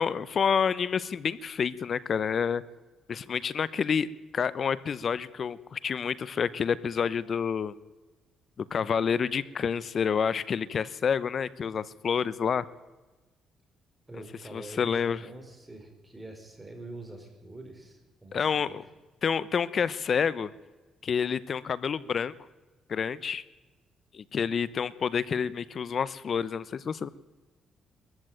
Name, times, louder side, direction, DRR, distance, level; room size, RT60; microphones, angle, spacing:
voice 1, 0.0-2.6 3.1-7.7 8.7-12.6 14.5-15.2 18.3-18.8 19.2-20.5 21.0-22.3 22.9-23.4 24.1-27.1, left 6 dB, 50° left, 18 dB, 0.9 m, -28 dB
voice 2, 14.1-18.8, right 2 dB, 15° right, 4 dB, 5.3 m, -45 dB
22.0 x 14.5 x 9.1 m, 1.2 s
cardioid pair, 90°, 0 cm